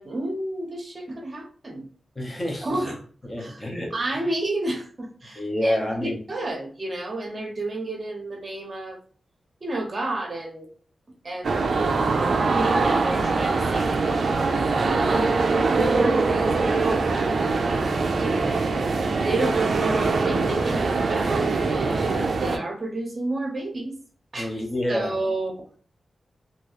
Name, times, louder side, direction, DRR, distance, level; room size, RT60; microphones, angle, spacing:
voice 1, 0.0-1.9 2.6-3.0 3.4-3.6 3.9-9.0 9.6-10.7 11.2-11.7 12.5-17.1 18.2-18.6 19.2-23.9 24.3-24.5 24.9-25.7, right 2 dB, 35° right, 1 dB, 0.9 m, -31 dB
voice 2, 2.2-2.8 3.2-4.0 5.4-6.2 24.3-25.1, left 1 dB, 20° left, -1 dB, 0.9 m, -28 dB
sound 1, 11.4-22.6, right 3 dB, 60° right, 0.4 m, -23 dB
3.0 x 2.7 x 2.9 m, 0.43 s
wide cardioid pair, 165°, 0 cm